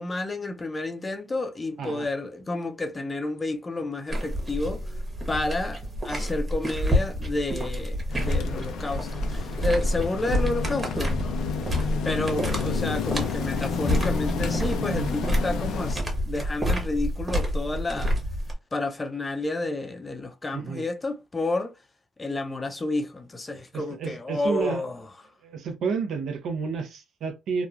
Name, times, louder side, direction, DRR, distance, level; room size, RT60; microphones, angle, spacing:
voice 1, 0.0-4.8 5.3-11.5 12.0-18.2 18.7-21.7 22.2-24.9, left 2 dB, 25° left, 0.5 m, -30 dB
sound 1, 4.1-18.5, equal, 25° right, 1.1 m, -28 dB
sound 2, 8.1-15.9, left 6 dB, 80° left, 0.5 m, -31 dB
voice 2, 12.4-13.0 14.8-15.1 20.5-20.8 23.7-24.8 25.4-27.7, right 5 dB, 70° right, 0.7 m, -31 dB
2.9 x 2.2 x 2.4 m
cardioid pair, 90°, 0 cm